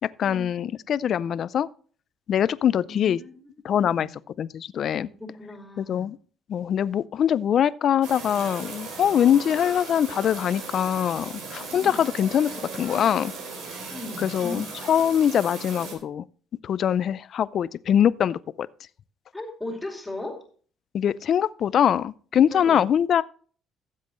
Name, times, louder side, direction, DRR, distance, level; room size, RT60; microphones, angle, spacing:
voice 1, 0.2-1.7 2.3-3.2 3.6-4.1 4.4-5.1 5.8-6.2 6.5-13.3 14.2-16.2 16.6-18.7 20.9-23.2, left 9 dB, 60° left, 0.4 m, -23 dB
voice 2, 2.8-4.1 4.9-6.1 11.7-12.0 13.9-14.6 19.3-20.4 22.5-22.9, left 2 dB, 10° left, 2.4 m, -37 dB
sound 1, 8.0-15.9, right 4 dB, 90° right, 3.4 m, -37 dB
15.5 x 7.5 x 3.1 m
cardioid pair, 100°, 0 cm